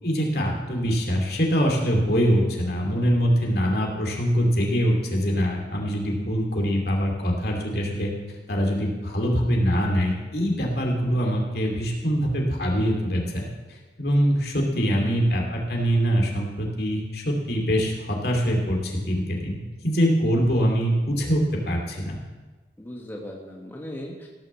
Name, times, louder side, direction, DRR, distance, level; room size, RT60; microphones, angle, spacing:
voice 1, 0.0-8.1 8.5-22.2, equal, 60° left, 0 dB, 2.6 m, -24 dB
voice 2, 14.8-15.4 22.8-24.3, left 1 dB, 10° left, -1 dB, 1.2 m, -38 dB
16.5 x 6.5 x 7.4 m, 1.2 s
head